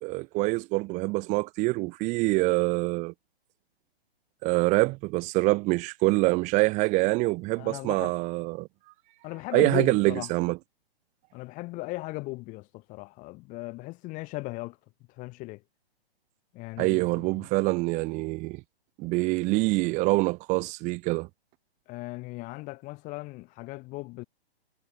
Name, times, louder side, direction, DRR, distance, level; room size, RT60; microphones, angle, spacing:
voice 1, 0.0-3.1 4.4-8.7 9.5-10.6 16.8-18.6 19.0-21.3, right 23 dB, 25° right, 2.1 m, -25 dB
voice 2, 7.6-8.2 9.2-10.3 11.3-14.8 15.1-15.6 16.5-17.1 21.9-24.2, left 22 dB, 25° left, 6.7 m, -37 dB
hypercardioid pair, 155°, 31 cm